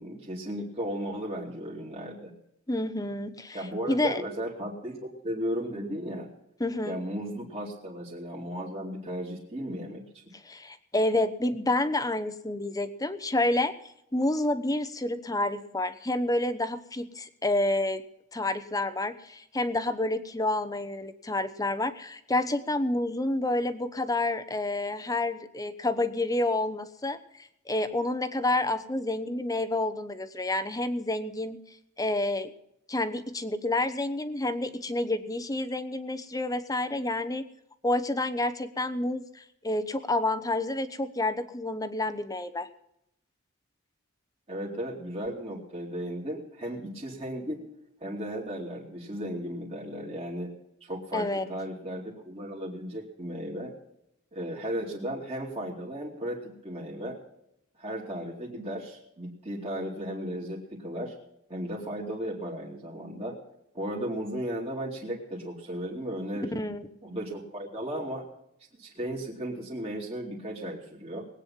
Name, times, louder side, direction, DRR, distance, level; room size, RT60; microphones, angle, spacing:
voice 1, 0.0-2.3 3.5-6.3 6.8-10.0 44.5-47.6 48.0-50.5 50.8-53.7 54.3-57.2 57.8-61.2 61.5-63.4 63.7-66.6 67.0-68.2 68.8-71.3, equal, 30° right, -4 dB, 2.7 m, -35 dB
voice 2, 2.7-3.6 3.9-4.2 6.6-7.0 10.4-13.7 14.1-18.0 18.3-27.2 27.7-31.6 32.0-32.5 32.9-37.4 37.8-42.7 51.1-51.4 66.5-67.0, left 2 dB, 15° left, 12 dB, 1.0 m, -29 dB
20.5 x 9.2 x 5.7 m, 0.78 s
head